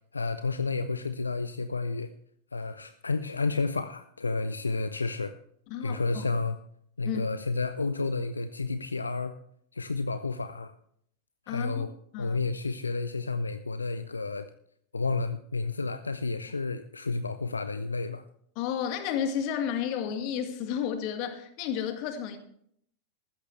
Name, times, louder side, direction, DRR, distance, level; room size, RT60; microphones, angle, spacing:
voice 1, 0.1-2.1 2.5-5.4 5.8-6.6 7.0-9.3 9.7-10.7 11.5-11.9 12.2-14.5 14.9-18.2, left 3 dB, 80° left, 11 dB, 0.6 m, -31 dB
voice 2, 5.7-6.3 7.0-7.2 11.5-11.8 12.1-12.4 18.6-22.4, left 8 dB, 45° left, 7 dB, 1.9 m, -32 dB
14.5 x 13.0 x 3.3 m, 0.66 s
figure-of-eight pair, 90°, 0 cm